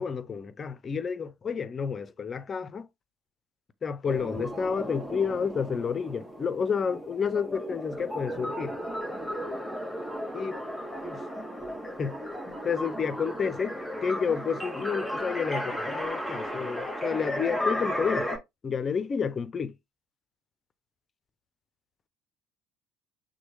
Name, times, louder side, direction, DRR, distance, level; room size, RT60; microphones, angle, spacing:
voice 1, 0.0-2.8 3.8-8.7 10.3-10.6 11.0-11.2 12.0-12.2 12.6-18.3 18.6-19.7, left 6 dB, 35° left, 0.6 m, -30 dB
sound 1, 4.0-18.4, equal, 5° left, 1.9 m, -34 dB
6.0 x 2.3 x 3.3 m
hypercardioid pair, 65°, 0 cm